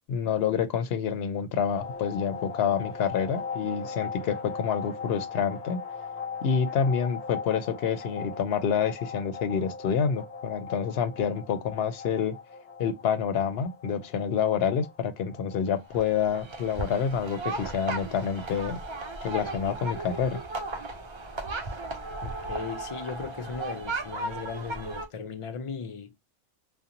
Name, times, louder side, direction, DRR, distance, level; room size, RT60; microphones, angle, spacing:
voice 1, 0.1-5.8 6.4-12.3 12.8-18.8 19.2-20.4, left 7 dB, 75° left, 0.8 m, -28 dB
sound 1, 1.7-20.2, left 5 dB, 35° left, 1.1 m, -40 dB
sound 2, 15.9-25.1, right 2 dB, 50° right, 0.3 m, -36 dB
voice 2, 22.2-26.1, left 6 dB, 55° left, 0.3 m, -37 dB
2.5 x 2.1 x 2.8 m
omnidirectional pair, 1.1 m